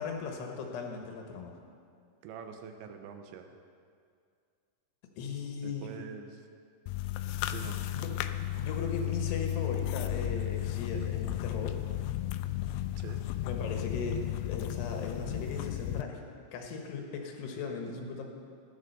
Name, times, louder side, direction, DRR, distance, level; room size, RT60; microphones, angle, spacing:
voice 1, 0.0-1.5 5.1-5.9 7.9-8.1 8.6-11.8 13.4-16.2 16.5-18.2, left 4 dB, 70° left, 2 dB, 3.3 m, -38 dB
voice 2, 2.2-3.6 5.6-6.5 7.4-7.8 12.9-13.2, right 7 dB, 90° right, 6 dB, 3.2 m, -45 dB
sound 1, 6.9-16.0, left 13 dB, 90° left, 2.3 m, -34 dB
15.0 x 10.5 x 6.7 m, 2.3 s
omnidirectional pair, 5.2 m